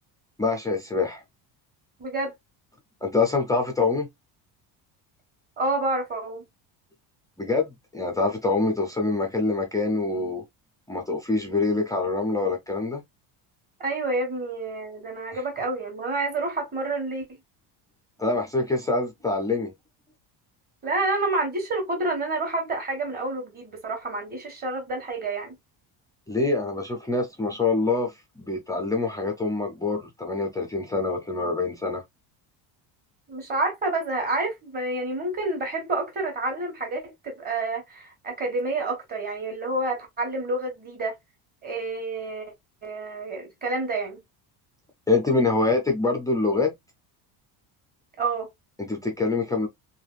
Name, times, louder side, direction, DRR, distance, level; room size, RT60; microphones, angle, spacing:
voice 1, 0.4-1.2 3.0-4.1 7.4-10.4 10.9-13.0 15.3-15.4 18.2-19.7 26.3-32.0 45.1-46.7 48.8-49.7, left 3 dB, 10° left, 0.3 m, -25 dB
voice 2, 2.0-2.3 5.6-6.4 13.8-17.2 20.8-25.6 33.3-41.2 41.6-42.5 42.8-44.2 48.2-48.5, right 2 dB, 20° right, 1.2 m, -29 dB
3.3 x 2.6 x 2.3 m
cardioid pair, 170°, 44 cm